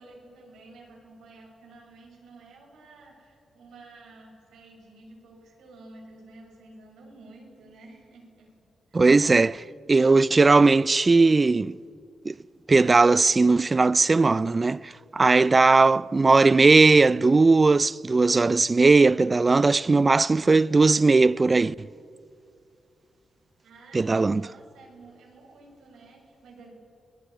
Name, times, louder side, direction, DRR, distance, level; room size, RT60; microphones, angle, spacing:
voice 1, 0.0-8.5 8.9-9.0 23.6-26.7, right 2 dB, 80° right, 6.9 m, -51 dB
voice 2, 8.9-11.8 12.3-12.4 12.7-21.9 23.9-24.5, right 3 dB, 35° right, 0.6 m, -19 dB
28.0 x 19.0 x 9.8 m
supercardioid pair, 45°, 0 cm